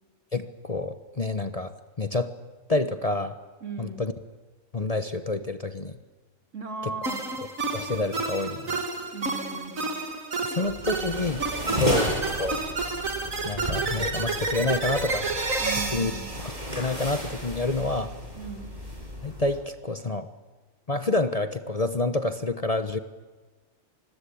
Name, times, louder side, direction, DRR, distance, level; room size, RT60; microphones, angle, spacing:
voice 1, 0.3-2.3 2.7-3.4 3.8-4.1 4.7-6.0 7.4-7.5 7.7-8.8 10.4-12.1 12.4-12.6 13.4-15.3 15.9-16.1 16.7-18.1 19.2-20.3 20.9-23.0, left 2 dB, 30° left, 10 dB, 1.0 m, -28 dB
voice 2, 3.6-4.0 6.5-7.3 9.1-9.9 10.5-10.7 11.6-11.9 15.6-16.4 18.3-18.7, right 5 dB, 65° right, 5 dB, 3.3 m, -37 dB
sound 1, 7.0-17.4, right 3 dB, 90° right, 2.8 m, -30 dB
sound 2, 10.6-19.6, equal, 30° right, 8.2 m, -34 dB
25.5 x 21.5 x 8.6 m, 1.3 s
omnidirectional pair, 1.4 m